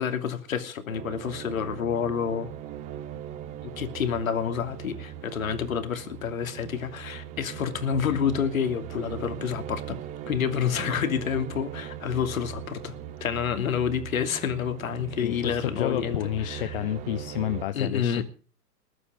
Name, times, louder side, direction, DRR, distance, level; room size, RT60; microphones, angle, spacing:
voice 1, 0.0-2.5 3.8-10.0 10.3-13.0 13.2-16.8 17.7-18.2, left 7 dB, 55° left, 2.7 m, -28 dB
sound 1, 0.9-17.7, right 10 dB, 15° right, 0.7 m, -39 dB
voice 2, 15.2-18.2, left 13 dB, 35° left, 0.9 m, -30 dB
21.0 x 11.0 x 4.9 m
figure-of-eight pair, 115°, 48 cm